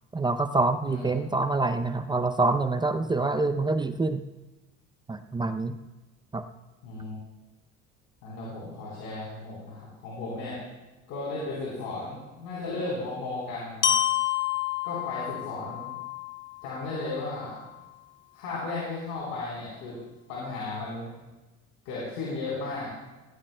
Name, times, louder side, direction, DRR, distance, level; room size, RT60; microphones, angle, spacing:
voice 1, 0.1-4.2 5.1-5.8 6.3-6.5, right 3 dB, 15° right, 7 dB, 0.6 m, -26 dB
voice 2, 6.8-7.2 8.2-10.6 11.1-13.9 14.8-15.9 16.6-17.6 18.3-20.0 20.3-21.1 21.8-22.9, left 3 dB, 90° left, -7 dB, 3.9 m, -35 dB
Glockenspiel, 13.8-17.8, left 10 dB, 40° left, 0.8 m, -30 dB
17.0 x 16.0 x 2.2 m, 1.1 s
supercardioid pair, 90°, 29 cm